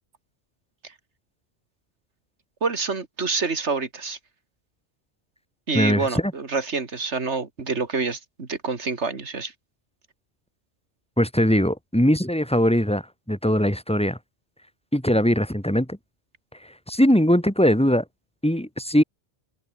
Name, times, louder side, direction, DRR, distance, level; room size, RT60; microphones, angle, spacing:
voice 1, 2.6-4.2 5.7-9.5, right 4 dB, 75° right, 2.6 m, -27 dB
voice 2, 5.7-6.3 11.2-13.0 13.3-14.2 14.9-16.0 16.9-18.0 18.4-19.0, equal, 5° left, 4.7 m, -20 dB
omnidirectional pair, 1.2 m